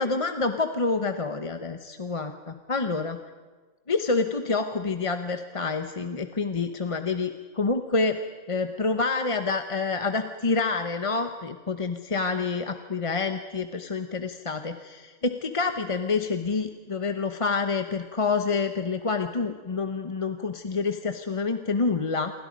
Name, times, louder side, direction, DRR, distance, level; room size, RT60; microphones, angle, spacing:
voice 1, 0.0-3.2 3.9-8.2 8.5-22.3, left 4 dB, 30° left, 7 dB, 0.8 m, -27 dB
27.5 x 24.0 x 5.3 m, 1.4 s
omnidirectional pair, 1.4 m